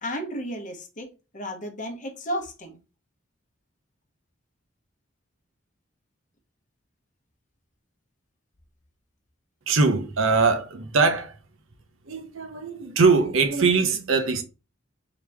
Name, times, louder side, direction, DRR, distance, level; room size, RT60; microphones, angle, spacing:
voice 1, 0.0-2.8, equal, 40° left, 1.0 m, -33 dB
voice 2, 9.7-11.4 12.1-14.4, right 4 dB, 90° right, 0.8 m, -22 dB
3.9 x 3.0 x 3.4 m
head